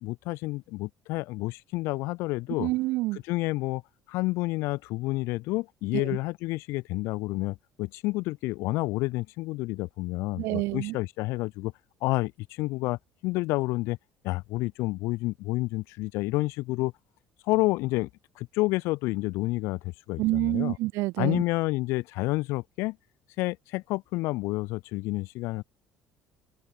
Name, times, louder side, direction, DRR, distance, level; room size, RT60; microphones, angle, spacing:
voice 1, 0.0-2.7 3.1-3.8 4.1-11.7 12.0-14.0 14.2-16.9 17.4-18.1 18.4-20.8 21.2-23.0 23.4-25.6, left 21 dB, 60° left, 0.3 m, -29 dB
voice 2, 2.6-3.2 5.9-6.2 10.4-11.0 20.2-21.4, right 20 dB, 60° right, 0.4 m, -28 dB
figure-of-eight pair, 55°, 5 cm